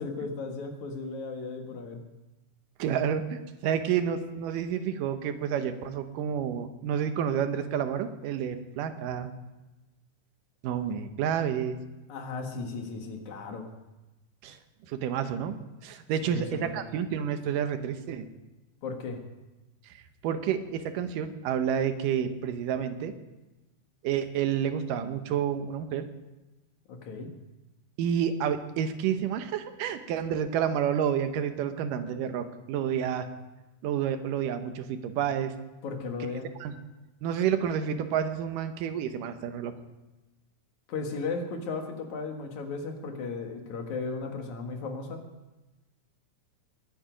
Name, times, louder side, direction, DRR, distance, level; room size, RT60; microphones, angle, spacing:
voice 1, 0.0-2.0 12.1-13.7 16.2-16.8 18.8-19.2 26.9-27.3 35.8-36.5 40.9-45.2, left 4 dB, 65° left, 4 dB, 2.8 m, -35 dB
voice 2, 2.8-9.3 10.6-11.8 14.4-14.6 14.9-15.5 15.8-18.2 19.9-23.1 24.0-26.1 28.0-33.3 33.8-35.5 36.6-36.8 37.2-39.7, right 8 dB, 85° right, 9 dB, 2.6 m, -29 dB
21.0 x 9.3 x 5.1 m, 1.1 s
omnidirectional pair, 3.7 m